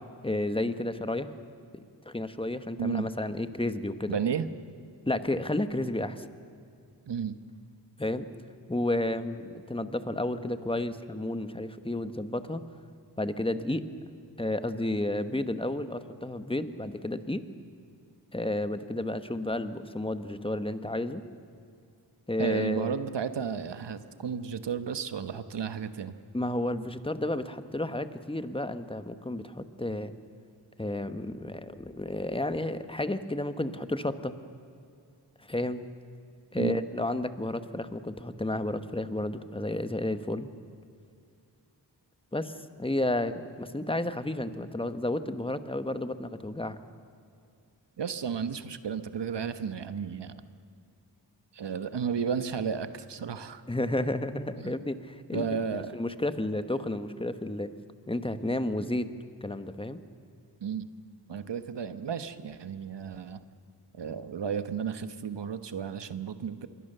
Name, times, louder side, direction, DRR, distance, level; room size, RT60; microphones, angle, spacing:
voice 1, 0.2-1.3 1.7-4.2 5.1-6.2 8.0-8.3 8.7-12.6 13.2-13.8 14.4-17.4 18.3-21.2 22.3-23.0 26.3-30.1 30.8-34.3 35.5-35.8 36.5-40.5 42.3-42.5 42.8-46.8 53.7-55.4 55.9-57.7 58.1-59.1 59.4-60.0, left 1 dB, 15° left, 10 dB, 1.2 m, -31 dB
voice 2, 4.1-4.5 7.1-7.4 22.4-26.1 36.6-36.8 48.0-50.5 51.5-53.6 54.6-54.8 55.3-56.0 60.6-60.9 61.3-63.4 63.9-66.7, right 7 dB, 75° right, 11 dB, 1.2 m, -33 dB
27.0 x 22.5 x 6.8 m, 2.4 s
wide cardioid pair, 70°, 42 cm